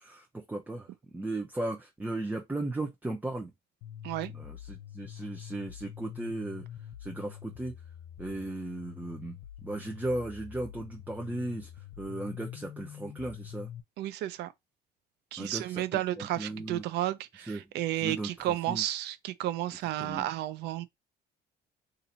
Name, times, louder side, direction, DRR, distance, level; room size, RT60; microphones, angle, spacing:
voice 1, 0.0-3.5 4.3-6.6 7.0-7.7 8.2-13.7 15.4-16.8 17.5-18.8 20.0-20.3, right 2 dB, 10° right, 0.6 m, -36 dB
sound 1, 3.8-13.8, left 10 dB, 85° left, 0.6 m, -45 dB
voice 2, 14.0-14.5 15.3-20.9, right 14 dB, 80° right, 0.5 m, -32 dB
2.8 x 2.6 x 4.2 m
cardioid pair, 110°, 17 cm